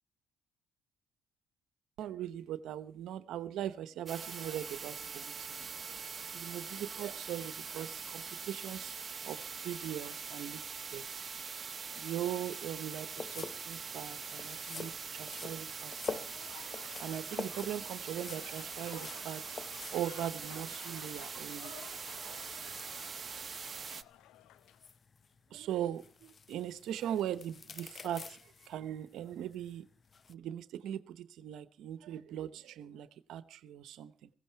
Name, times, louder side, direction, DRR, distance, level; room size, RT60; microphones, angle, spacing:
voice 1, 2.0-5.6 5.9-11.1 11.8-19.6 19.9-22.5 25.5-29.9 30.3-34.3, right 11 dB, 75° right, 0.9 m, -40 dB
sound 1, 4.1-24.0, right 5 dB, 40° right, 0.9 m, -43 dB
sound 2, 13.1-30.3, left 5 dB, 40° left, 0.7 m, -48 dB
Applause / Crowd, 16.0-24.9, left 12 dB, 80° left, 0.7 m, -55 dB
16.0 x 16.0 x 4.5 m
supercardioid pair, 65°, 0 cm